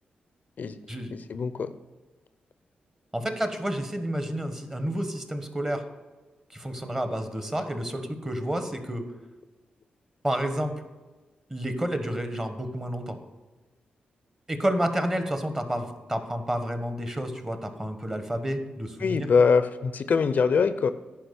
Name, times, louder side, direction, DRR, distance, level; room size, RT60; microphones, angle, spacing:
voice 1, 1.1-1.7 19.0-20.9, left 5 dB, 60° left, 12 dB, 0.5 m, -23 dB
voice 2, 3.1-5.9 6.5-9.0 10.2-10.8 11.5-13.2 14.5-19.3, right 1 dB, 15° right, 7 dB, 1.3 m, -30 dB
10.5 x 5.0 x 6.9 m, 1.2 s
cardioid pair, 85°, 3 cm